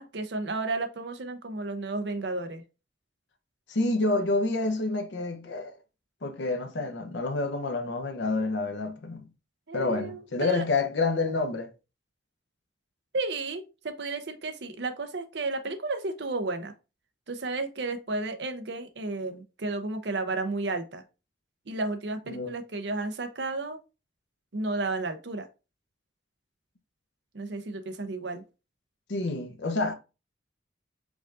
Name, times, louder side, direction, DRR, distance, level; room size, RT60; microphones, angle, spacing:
voice 1, 0.0-2.6 9.7-10.6 13.1-16.7 17.3-21.0 21.7-23.8 24.5-25.5 27.3-28.4, right 3 dB, 70° right, 0.7 m, -32 dB
voice 2, 3.7-5.8 6.2-9.3 9.7-11.7 22.3-22.5 29.1-30.0, left 3 dB, 80° left, 0.8 m, -28 dB
4.9 x 3.6 x 2.5 m
head